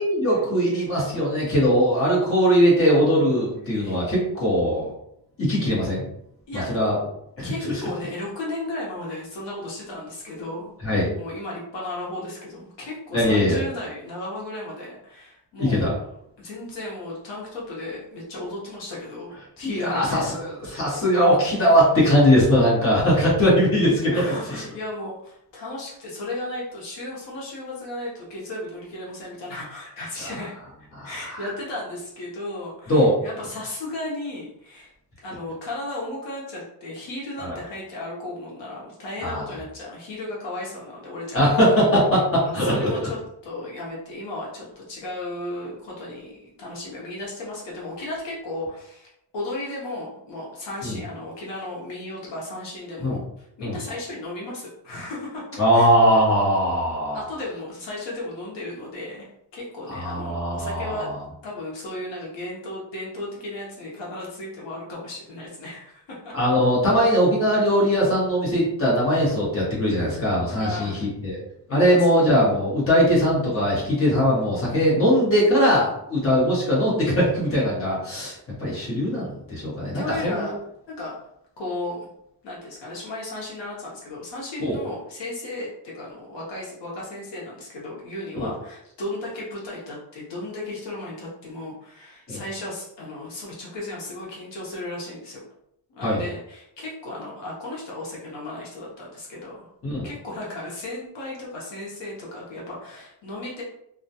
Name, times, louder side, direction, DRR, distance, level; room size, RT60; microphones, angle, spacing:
voice 1, 0.0-4.9 5.4-6.0 6.7-7.0 7.4-7.8 10.8-11.1 13.1-13.6 15.6-15.9 19.6-24.1 24.5-24.6 30.2-30.3 30.9-31.5 32.9-33.1 37.4-37.6 39.2-39.4 41.3-43.1 50.8-51.0 53.0-53.2 53.6-53.8 55.6-57.2 59.9-61.1 66.3-70.9 71.2-71.4 71.7-80.5 84.6-84.8 88.4-88.5 92.3-92.4 96.0-96.2 99.8-100.1, equal, 30° left, -6 dB, 1.0 m, -20 dB
voice 2, 3.7-4.1 6.5-6.7 7.4-10.7 11.1-15.9 16.4-20.2 24.1-30.5 30.8-34.9 35.2-41.7 42.7-55.9 57.1-61.2 61.4-66.3 70.6-71.1 71.7-72.1 79.9-80.5 80.9-81.1 81.6-82.1 82.4-95.4 95.9-99.7 100.0-103.6, left 1 dB, 65° left, -4 dB, 0.8 m, -35 dB
2.3 x 2.2 x 2.7 m, 0.76 s
wide cardioid pair, 180°, 45 cm